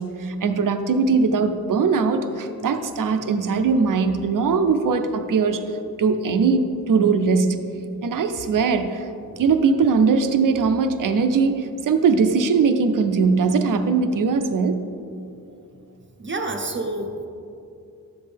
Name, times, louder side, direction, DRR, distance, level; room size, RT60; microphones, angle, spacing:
voice 1, 0.0-5.6 6.0-7.6 8.0-9.1 9.4-14.8, right 5 dB, 60° right, 8 dB, 0.7 m, -20 dB
voice 2, 16.2-17.3, right 2 dB, 30° right, 2 dB, 0.9 m, -28 dB
12.0 x 7.5 x 3.5 m, 2.6 s
wide cardioid pair, 105°, 37 cm